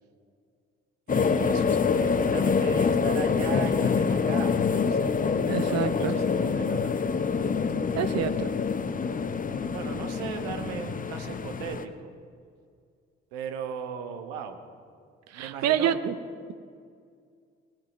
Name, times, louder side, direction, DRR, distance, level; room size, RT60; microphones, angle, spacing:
sound 1, 1.1-11.8, left 5 dB, 25° left, 0.8 m, -26 dB
voice 1, 1.1-5.2 5.6-7.0 9.6-12.1 13.3-14.6 15.3-16.0, right 7 dB, 70° right, 6 dB, 1.3 m, -38 dB
voice 2, 5.5-6.1 7.9-8.5 15.3-16.2, right 9 dB, 55° right, 11 dB, 0.9 m, -27 dB
20.0 x 7.5 x 5.4 m, 2.2 s
figure-of-eight pair, 40°, 32 cm